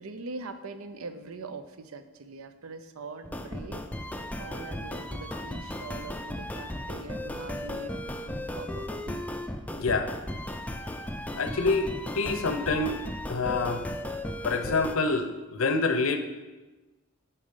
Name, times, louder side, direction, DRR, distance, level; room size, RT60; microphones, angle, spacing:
voice 1, 0.0-3.9 4.4-7.9 8.2-9.2, right 3 dB, 80° right, 10 dB, 0.6 m, -42 dB
sound 1, 3.2-15.0, left 1 dB, 5° left, 0.4 m, -36 dB
voice 2, 9.8-10.1 11.4-11.9 12.1-13.0 13.3-13.8 14.4-16.2, left 3 dB, 70° left, 8 dB, 0.7 m, -26 dB
10.0 x 4.1 x 5.5 m, 1.2 s
head